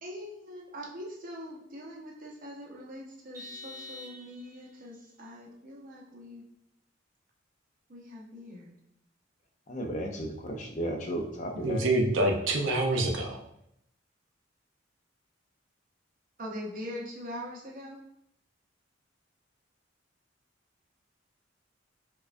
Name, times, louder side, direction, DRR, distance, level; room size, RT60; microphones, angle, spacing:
voice 1, 0.0-6.4 7.9-8.7 16.4-18.0, equal, 45° right, -3 dB, 0.8 m, -42 dB
Vehicle horn car horn honking, 3.3-4.7, left 2 dB, 20° right, 1.1 m, -45 dB
voice 2, 9.7-11.8, equal, 40° left, 2 dB, 0.5 m, -34 dB
voice 3, 11.6-13.4, right 1 dB, 80° right, 3 dB, 0.6 m, -26 dB
4.6 x 2.3 x 2.5 m, 0.77 s
head